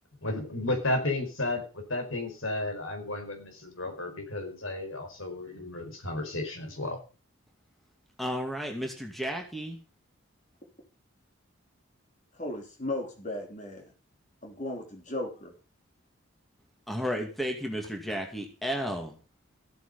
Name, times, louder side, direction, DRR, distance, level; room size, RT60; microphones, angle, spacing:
voice 1, 0.2-7.0, left 2 dB, 80° left, 4.8 m, -33 dB
voice 2, 8.2-9.8 16.9-19.1, equal, ahead, 2.4 m, -33 dB
voice 3, 12.3-13.9 14.4-15.5, left 1 dB, 35° left, 3.6 m, -36 dB
14.5 x 9.2 x 5.4 m
head